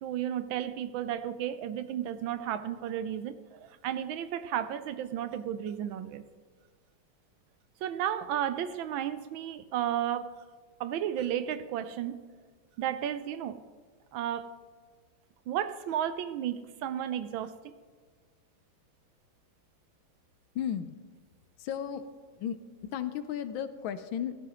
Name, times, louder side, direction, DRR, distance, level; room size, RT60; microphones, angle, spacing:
voice 1, 0.0-6.2 7.8-10.3 10.8-12.3 12.8-13.6 14.1-14.5 15.5-17.7, right 10 dB, 75° right, 12 dB, 1.3 m, -33 dB
voice 2, 20.5-21.0 21.6-22.0 22.3-24.4, left 9 dB, 75° left, 11 dB, 1.4 m, -34 dB
16.5 x 12.0 x 3.0 m, 1.5 s
omnidirectional pair, 2.3 m